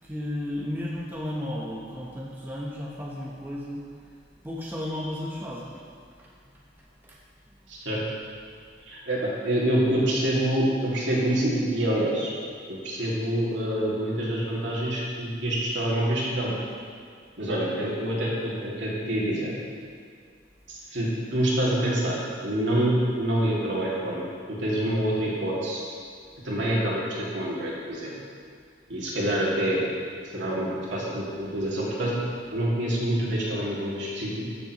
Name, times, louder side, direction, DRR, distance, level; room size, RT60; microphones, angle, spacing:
voice 1, 0.0-4.1 4.4-5.9 6.2-7.2, left 1 dB, 10° right, -5 dB, 0.9 m, -34 dB
voice 2, 7.7-8.0 8.9-12.3 12.7-16.5 17.4-19.6 20.7-25.8 26.4-28.2 28.9-29.8 30.3-34.5, right 1 dB, 70° right, -6 dB, 2.2 m, -26 dB
14.0 x 6.8 x 3.0 m, 2.1 s
head